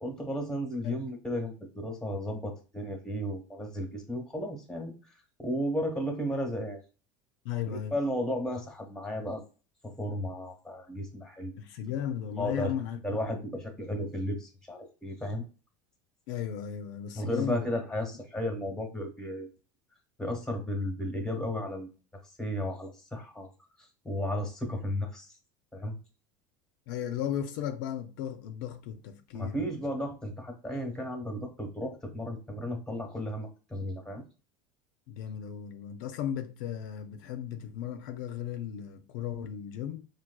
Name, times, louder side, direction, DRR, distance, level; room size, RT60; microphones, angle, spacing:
voice 1, 0.0-4.9 5.4-6.8 7.7-9.4 9.8-11.6 12.4-12.7 13.0-15.4 17.1-19.5 20.2-21.9 22.4-23.5 24.0-25.3 25.7-25.9 29.3-34.2, equal, 5° left, 1.0 m, -34 dB
voice 2, 7.4-7.9 11.6-13.0 13.3-13.4 16.3-17.7 26.9-29.7 35.1-40.1, left 9 dB, 70° left, 0.4 m, -35 dB
4.5 x 2.3 x 2.2 m
supercardioid pair, 115°, 11 cm